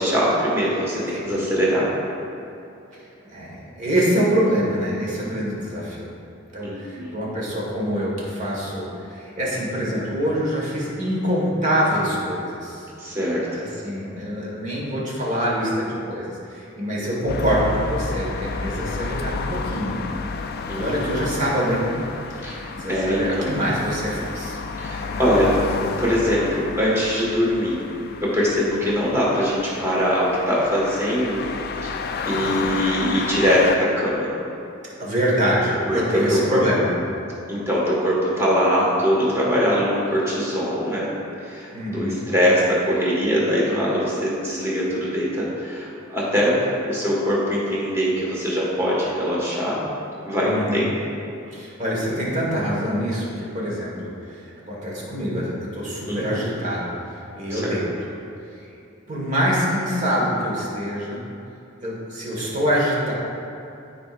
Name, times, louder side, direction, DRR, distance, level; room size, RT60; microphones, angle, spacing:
voice 1, 0.0-1.9 6.6-7.1 13.0-13.5 20.7-21.2 22.4-23.6 24.8-25.5 26.0-27.8 28.2-31.4 31.8-32.0 32.3-34.3 35.9-36.6 37.5-41.1 41.4-49.8 50.2-50.9 56.1-56.4 57.5-57.8, equal, 15° right, -6 dB, 1.6 m, -22 dB
voice 2, 2.9-6.0 6.5-12.8 13.6-20.1 20.7-21.9 22.3-24.6 35.0-36.9 41.7-42.2 50.4-50.8 51.5-54.4 54.7-56.9 57.4-57.9 58.6-58.7 59.1-61.2 61.8-63.1, equal, 35° right, -5 dB, 1.7 m, -25 dB
sound 1, 17.3-33.8, left 4 dB, 50° left, 0.4 m, -31 dB
13.0 x 4.6 x 2.6 m, 2.7 s
head